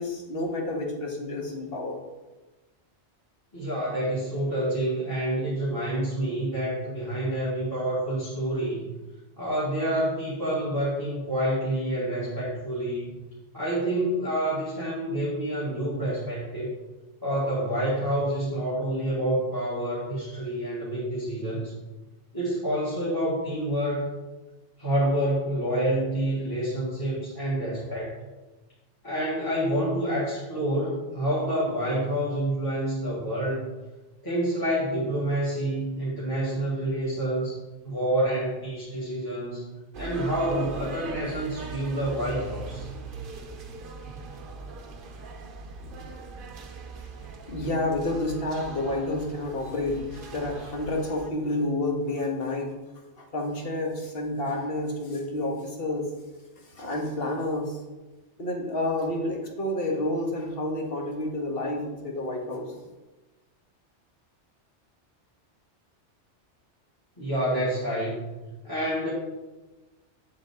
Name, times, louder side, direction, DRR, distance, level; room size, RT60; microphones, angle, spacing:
voice 1, 0.0-2.0 47.5-52.7 53.2-56.1 56.7-57.8 58.4-62.7, left 1 dB, 55° left, 0 dB, 1.7 m, -29 dB
voice 2, 3.5-8.9 9.4-13.2 13.5-16.7 17.2-21.7 22.3-24.1 24.8-28.1 29.0-33.7 34.2-37.6 37.8-39.7 40.0-42.9 67.2-68.4 68.6-69.1, right 1 dB, 20° left, -7 dB, 1.8 m, -28 dB
sound 1, 39.9-51.3, right 3 dB, 50° right, 0.9 m, -40 dB
8.8 x 7.3 x 3.6 m, 1.1 s
omnidirectional pair, 1.2 m